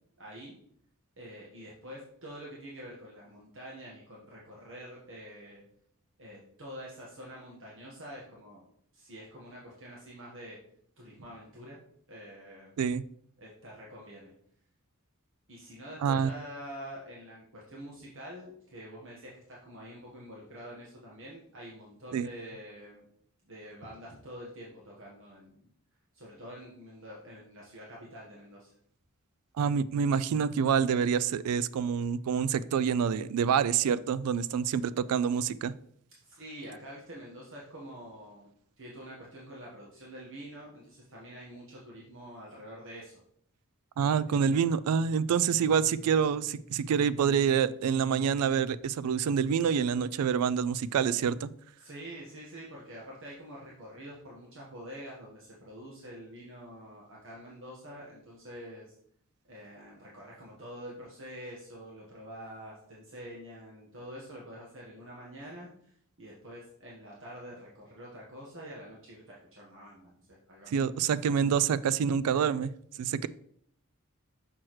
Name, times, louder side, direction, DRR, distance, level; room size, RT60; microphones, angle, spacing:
voice 1, 0.2-0.6 1.2-5.6 6.2-8.6 8.9-10.6 11.0-11.8 12.1-12.7 13.4-14.3 15.5-23.1 23.4-25.7 26.1-28.7 36.3-38.5 38.8-43.1 44.2-44.5 51.8-58.8 59.5-70.7, equal, 60° right, -4 dB, 1.3 m, -46 dB
voice 2, 29.6-35.7 44.0-51.5 70.7-72.7 73.0-73.3, right 7 dB, 80° right, 16 dB, 0.3 m, -27 dB
6.3 x 6.0 x 3.1 m, 0.66 s
head